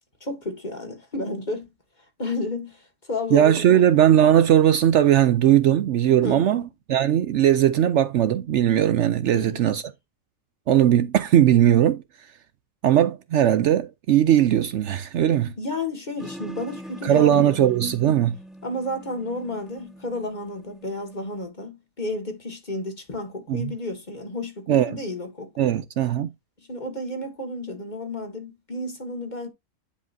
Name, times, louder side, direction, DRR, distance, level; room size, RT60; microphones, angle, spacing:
voice 1, 0.2-1.7 2.2-3.8 6.2-6.7 9.3-9.8 15.6-17.7 18.6-25.7 26.7-29.5, left 2 dB, 35° left, 2.0 m, -32 dB
voice 2, 3.3-9.8 10.7-12.0 12.8-15.5 17.0-18.3 23.5-23.7 24.7-24.9 25.6-26.3, right 11 dB, 65° right, 0.8 m, -19 dB
sound 1, 16.2-21.5, equal, ahead, 1.3 m, -43 dB
10.0 x 5.2 x 2.7 m
omnidirectional pair, 1.4 m